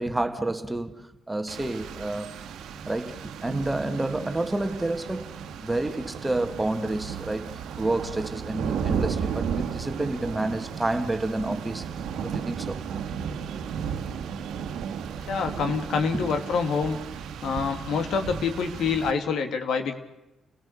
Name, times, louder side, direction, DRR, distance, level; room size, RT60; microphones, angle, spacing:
voice 1, 0.0-2.3 2.8-5.3 5.6-11.8 12.2-12.8 15.5-15.6 16.1-16.3, right 2 dB, 15° right, 1.7 m, -29 dB
Rain, 1.5-19.1, right 7 dB, 80° right, 1.5 m, -34 dB
voice 2, 15.3-17.0 17.4-20.0, left 5 dB, 75° left, 2.6 m, -26 dB
30.0 x 17.0 x 6.9 m
cardioid pair, 90°, 0 cm